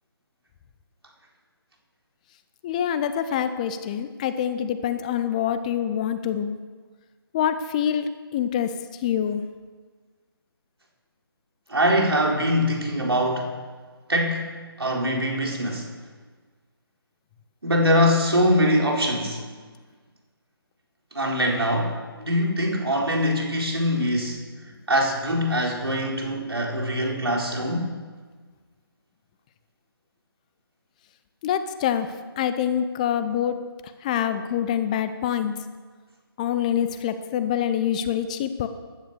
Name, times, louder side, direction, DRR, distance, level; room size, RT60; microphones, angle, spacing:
voice 1, 2.6-6.6 7.3-8.1 8.3-8.7 9.0-9.4 31.4-32.1 32.4-33.6 34.0-35.5 36.4-38.7, left 9 dB, 20° left, 11 dB, 0.5 m, -25 dB
voice 2, 11.7-13.6 14.1-15.9 17.6-19.4 21.1-24.4 24.9-27.9, equal, 75° right, 0 dB, 4.2 m, -23 dB
15.0 x 10.5 x 6.7 m, 1.5 s
figure-of-eight pair, 145°, 13 cm